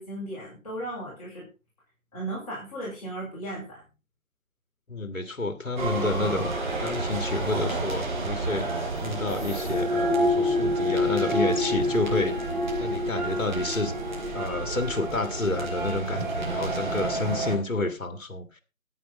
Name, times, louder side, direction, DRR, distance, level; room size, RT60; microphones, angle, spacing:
voice 1, 0.0-1.5 2.1-3.8, right 1 dB, 25° left, -6 dB, 6.5 m, -36 dB
voice 2, 4.9-6.5 6.8-8.7 9.0-12.5 12.8-13.9 14.3-18.6, left 2 dB, 65° left, 9 dB, 2.0 m, -30 dB
sound 1, 5.8-17.6, equal, 35° right, 4.0 m, -28 dB
14.0 x 9.3 x 4.3 m, 0.31 s
figure-of-eight pair, 160°, 41 cm